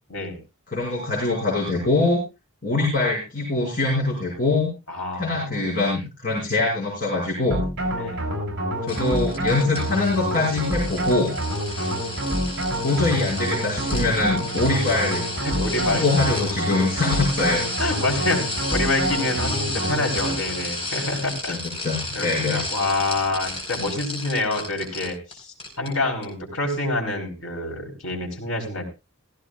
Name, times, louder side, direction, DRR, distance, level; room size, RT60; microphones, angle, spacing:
voice 1, 0.7-2.2 2.6-4.7 5.1-7.6 8.8-11.3 12.8-15.2 15.8-17.7 21.4-22.6 25.8-25.9, left 2 dB, 40° left, -4 dB, 5.9 m, -23 dB
voice 2, 4.9-5.8 8.0-8.2 11.8-12.1 14.7-15.0 15.4-16.0 17.8-21.6 22.1-25.5 25.8-28.8, left 2 dB, 65° left, 2 dB, 4.1 m, -27 dB
sound 1, 7.5-20.7, right 1 dB, 55° right, 6.2 m, -27 dB
sound 2, 8.9-25.3 25.6-25.9 26.2-26.3, left 2 dB, 25° left, 5.0 m, -33 dB
16.5 x 15.5 x 2.5 m, 0.27 s
head